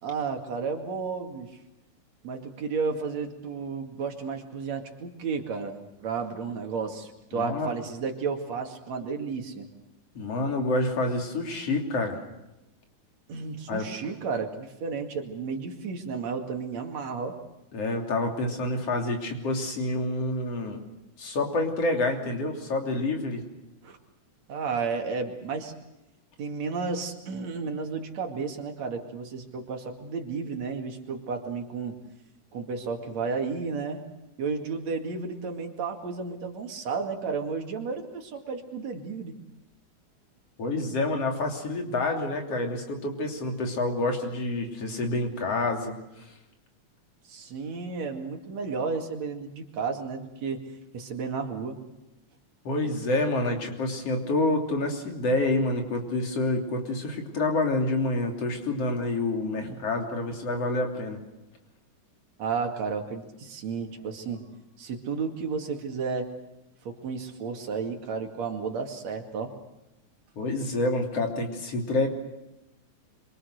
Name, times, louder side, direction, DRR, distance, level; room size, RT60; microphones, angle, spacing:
voice 1, 0.0-1.5 2.2-9.7 13.3-17.4 23.8-24.0 24.5-25.7 26.4-32.0 32.5-34.0 34.4-39.3 47.3-50.7 50.9-51.8 59.6-59.8 62.4-64.5 64.8-66.3 66.8-69.5, right 5 dB, 65° right, 4 dB, 3.4 m, -32 dB
voice 2, 7.3-7.7 10.2-12.2 13.7-13.8 17.7-20.8 21.2-23.4 40.6-45.9 52.7-61.2 70.4-72.1, left 2 dB, 55° left, 2 dB, 4.1 m, -28 dB
26.5 x 24.5 x 6.5 m, 0.93 s
omnidirectional pair, 3.4 m